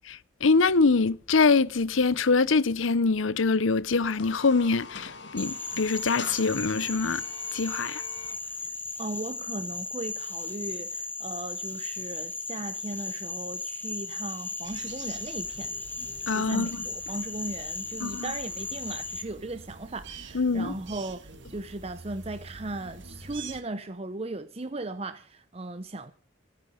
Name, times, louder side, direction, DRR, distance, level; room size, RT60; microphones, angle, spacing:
voice 1, 0.4-7.2 7.5-8.0 16.3-16.8 18.0-18.3 20.3-20.7, left 4 dB, 80° left, 0.8 m, -24 dB
sound 1, 4.0-8.4, left 4 dB, 60° left, 2.4 m, -43 dB
Frog, 5.4-19.2, left 3 dB, 10° left, 1.5 m, -36 dB
voice 2, 8.6-15.7 16.3-21.2 21.5-26.1, right 2 dB, 30° right, 0.7 m, -37 dB
sound 2, 14.6-23.6, right 4 dB, 65° right, 2.0 m, -46 dB
25.0 x 9.2 x 5.1 m
head